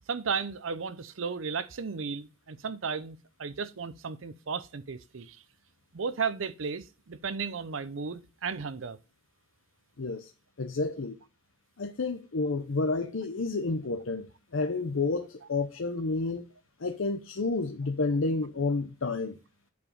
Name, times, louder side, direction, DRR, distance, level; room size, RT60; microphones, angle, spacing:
voice 1, 0.1-5.4 5.9-9.0, right 5 dB, 80° right, 0.6 m, -34 dB
voice 2, 10.0-10.3 10.6-11.2 11.8-16.5 16.8-19.4, left 3 dB, 80° left, 0.7 m, -30 dB
8.3 x 4.9 x 5.4 m
head